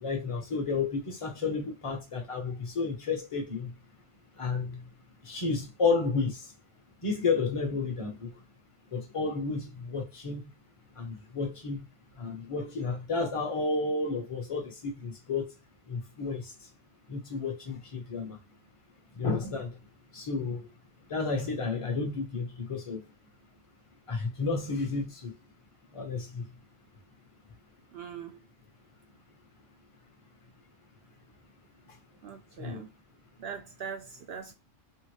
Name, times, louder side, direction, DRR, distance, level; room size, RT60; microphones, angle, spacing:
voice 1, 0.0-3.7 4.4-4.7 5.3-6.4 7.0-8.1 8.9-10.4 11.0-11.8 12.2-15.4 15.9-16.4 17.1-18.4 19.2-19.7 20.1-20.6 21.1-23.0 24.1-25.3 25.9-26.4 32.6-32.8, left 4 dB, 30° left, 0.8 m, -31 dB
voice 2, 27.9-28.4 32.2-32.9 33.4-34.5, right 7 dB, 60° right, 0.7 m, -41 dB
3.5 x 2.1 x 3.1 m
omnidirectional pair, 1.3 m